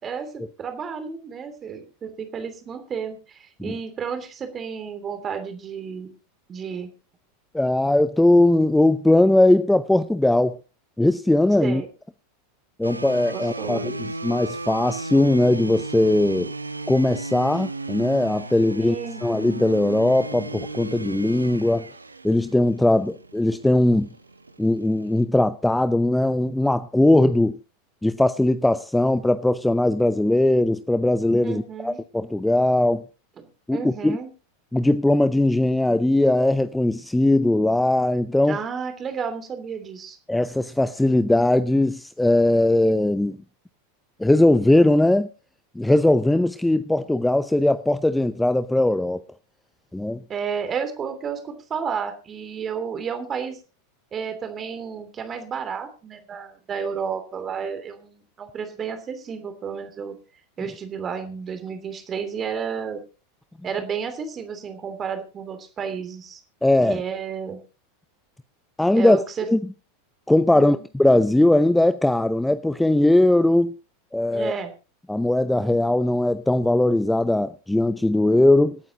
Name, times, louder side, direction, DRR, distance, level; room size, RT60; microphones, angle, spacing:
voice 1, 0.0-6.1 6.5-6.9 11.6-11.9 13.3-14.0 18.7-19.2 31.4-32.0 33.4-33.5 33.7-34.3 38.4-40.2 50.3-53.6 54.1-60.1 60.6-63.0 63.6-66.4 66.8-67.6 68.9-69.5 70.5-70.8 74.3-74.7, right 6 dB, 25° right, 2.8 m, -32 dB
voice 2, 7.5-10.6 11.0-11.8 12.8-16.5 16.9-19.0 19.2-21.9 22.2-24.1 24.6-27.6 28.0-33.0 33.7-34.2 34.7-38.6 40.3-43.4 44.2-45.3 45.8-49.2 49.9-50.2 66.6-67.0 68.8-69.2 69.5-69.6 70.3-73.7 74.1-74.5 75.1-78.8, left 1 dB, 5° left, 0.6 m, -19 dB
sound 1, 12.8-25.2, right 3 dB, 85° right, 0.7 m, -35 dB
26.5 x 9.1 x 2.8 m
figure-of-eight pair, 85°, 0 cm